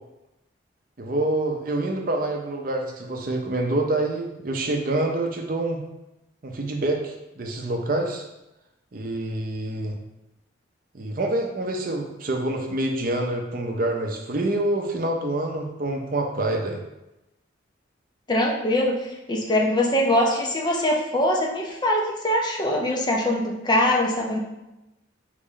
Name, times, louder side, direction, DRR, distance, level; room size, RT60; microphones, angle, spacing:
voice 1, 1.0-5.8 6.4-8.2 8.9-10.0 10.9-16.8, right 2 dB, 45° right, 2 dB, 0.5 m, -26 dB
voice 2, 18.3-24.4, left 1 dB, 20° left, -1 dB, 0.5 m, -23 dB
4.0 x 3.0 x 3.8 m, 0.95 s
head